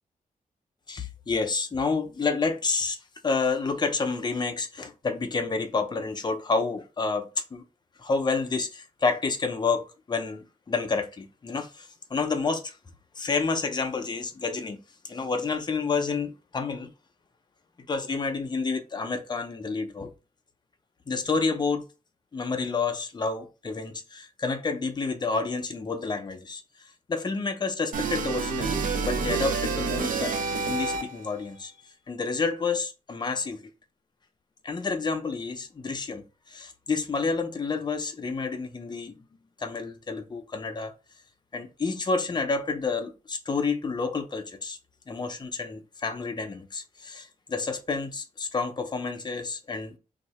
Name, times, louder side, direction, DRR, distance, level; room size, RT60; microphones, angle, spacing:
voice 1, 0.9-3.0 3.2-7.6 8.0-12.8 13.2-14.8 15.0-16.9 17.9-20.1 21.1-21.8 22.3-30.4 30.7-31.7 32.1-33.7 34.6-39.2 39.6-40.9 41.5-44.8 45.1-50.0, left 4 dB, 30° left, 0.5 m, -29 dB
sound 1, 27.9-31.3, right 5 dB, 65° right, 0.5 m, -28 dB
2.7 x 2.4 x 4.2 m
wide cardioid pair, 155°, 15 cm